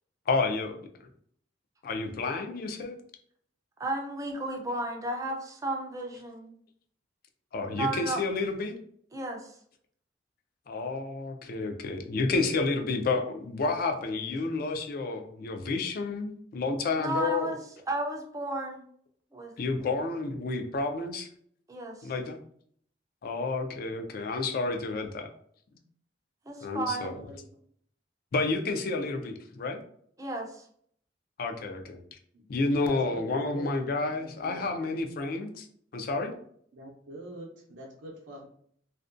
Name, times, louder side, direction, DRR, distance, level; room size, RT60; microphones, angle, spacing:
voice 1, 0.3-1.1 1.8-3.0 7.5-8.7 10.7-17.5 19.6-21.3 22.0-22.4 23.2-25.3 26.6-27.1 28.3-29.8 31.4-32.0 32.5-35.7 35.9-36.3, left 3 dB, 50° left, 5 dB, 0.4 m, -30 dB
voice 2, 3.8-6.5 7.7-8.2 9.1-9.5 17.0-18.9 19.3-19.5 19.8-20.0 21.7-22.1 26.5-27.2 30.2-30.7, right 2 dB, 20° right, 2 dB, 0.3 m, -33 dB
voice 3, 27.1-27.4 32.3-32.4 32.8-33.7 34.1-34.6 36.7-38.5, right 1 dB, 85° right, -2 dB, 0.6 m, -44 dB
2.4 x 2.1 x 2.5 m, 0.63 s
head